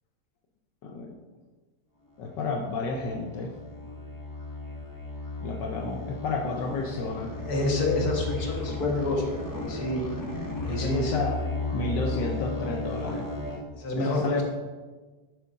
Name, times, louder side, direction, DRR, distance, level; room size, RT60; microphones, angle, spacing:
voice 1, 0.8-1.2 2.2-3.5 5.4-7.3 10.6-11.3 11.7-13.3 13.9-14.4, left 3 dB, 85° left, 0 dB, 1.5 m, -31 dB
sound 1, 2.2-13.6, left 2 dB, 25° left, 0.4 m, -34 dB
voice 2, 7.5-9.2 9.5-10.0 10.6-11.2 13.8-14.4, left 2 dB, 60° left, 0 dB, 2.1 m, -28 dB
11.0 x 9.3 x 2.6 m, 1.3 s
omnidirectional pair, 1.9 m